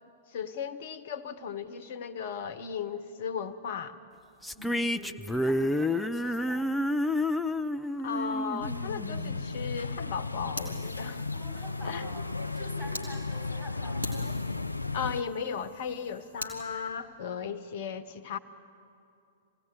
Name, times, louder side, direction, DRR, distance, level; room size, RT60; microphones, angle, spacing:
voice 1, 0.3-3.9 8.0-11.2 11.8-12.0 14.9-18.4, left 7 dB, 50° left, 13 dB, 1.1 m, -36 dB
sound 1, 4.4-9.8, left 1 dB, 5° left, 0.6 m, -30 dB
voice 2, 4.5-6.7 11.3-12.2 12.5-14.2, right 1 dB, 20° right, -3 dB, 7.5 m, -47 dB
sound 2, 8.6-15.2, left 3 dB, 85° left, 0.5 m, -35 dB
Fire, 10.6-13.1 13.5-13.6 14.0-16.6, left 1 dB, 80° right, 3.5 m, -43 dB
25.0 x 17.0 x 9.7 m, 2.5 s
figure-of-eight pair, 105°, 0 cm